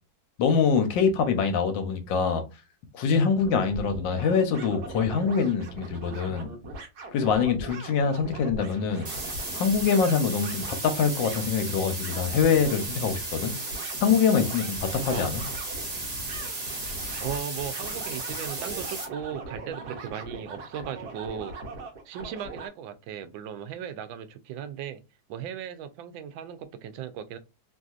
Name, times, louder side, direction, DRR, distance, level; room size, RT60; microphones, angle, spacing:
voice 1, 0.4-2.4 2.9-6.5 7.1-9.1 9.5-13.5 14.0-15.4, left 6 dB, 75° left, 1.3 m, -24 dB
sound 1, 3.4-22.7, right 1 dB, 60° right, 1.3 m, -41 dB
sound 2, 9.0-19.0, right 2 dB, 35° right, 0.6 m, -35 dB
voice 2, 17.2-21.6 22.1-25.0 25.3-27.4, right 8 dB, 80° right, 1.3 m, -37 dB
3.2 x 2.6 x 2.3 m
omnidirectional pair, 2.2 m